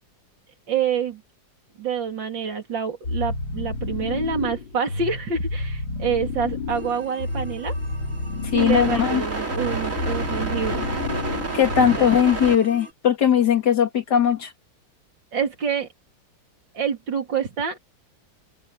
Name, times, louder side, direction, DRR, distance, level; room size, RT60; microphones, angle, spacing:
voice 1, 0.7-1.2 1.8-7.7 8.5-10.8 12.0-12.1 15.3-15.9 16.7-17.8, right 6 dB, 75° right, 3.7 m, -27 dB
sound 1, 3.0-12.3, left 3 dB, 80° left, 4.4 m, -30 dB
sound 2, 6.7-12.9, right 3 dB, 40° right, 3.6 m, -30 dB
voice 2, 8.5-9.2 11.5-14.5, left 8 dB, 60° left, 2.7 m, -19 dB
open air
omnidirectional pair, 2.0 m